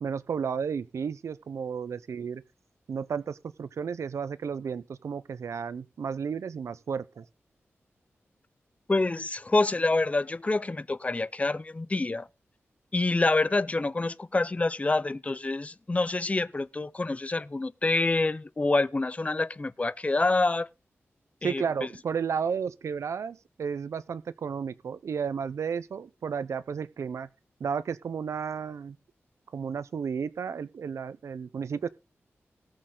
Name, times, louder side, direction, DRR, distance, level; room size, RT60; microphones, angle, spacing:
voice 1, 0.0-2.4 2.9-7.3 21.4-27.3 27.6-29.0 29.5-31.9, right 6 dB, 85° right, 0.6 m, -33 dB
voice 2, 8.9-12.3 12.9-20.7 21.4-21.6, left 2 dB, 30° left, 0.6 m, -27 dB
19.0 x 6.5 x 3.9 m
wide cardioid pair, 70°, 5 cm